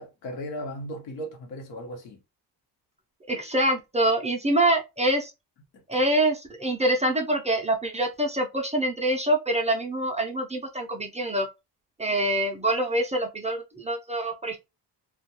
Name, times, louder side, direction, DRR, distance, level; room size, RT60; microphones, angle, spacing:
voice 1, 0.0-2.2 5.9-6.0, equal, 85° left, 0.9 m, -36 dB
voice 2, 3.3-5.3 5.9-11.5 12.0-14.6, right 1 dB, 15° right, 0.4 m, -25 dB
2.2 x 2.2 x 2.8 m
cardioid pair, 115°, 43 cm